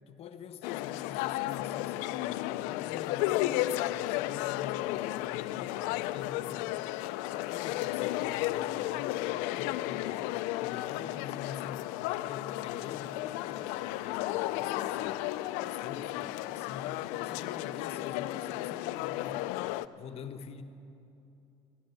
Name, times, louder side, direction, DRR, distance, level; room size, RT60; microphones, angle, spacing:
voice 1, 0.1-6.9 7.3-9.2 9.5-10.3 10.6-15.2 15.6-19.5 20.0-20.6, left 7 dB, 55° left, 1.0 m, -45 dB
sound 1, 0.6-19.8, left 16 dB, 85° left, 0.4 m, -33 dB
13.0 x 11.5 x 9.5 m
supercardioid pair, 90°, 12 cm